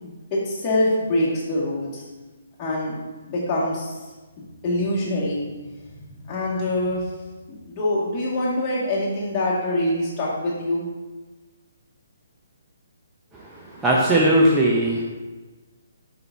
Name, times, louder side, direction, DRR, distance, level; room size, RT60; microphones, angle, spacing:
voice 1, 0.0-2.0 2.6-3.0 3.3-4.0 4.6-7.1 7.5-10.8, left 1 dB, 25° left, -7 dB, 2.1 m, -25 dB
voice 2, 13.8-15.0, right 1 dB, 10° right, -4 dB, 0.8 m, -18 dB
6.6 x 5.7 x 2.8 m, 1.2 s
figure-of-eight pair, 135°, 0 cm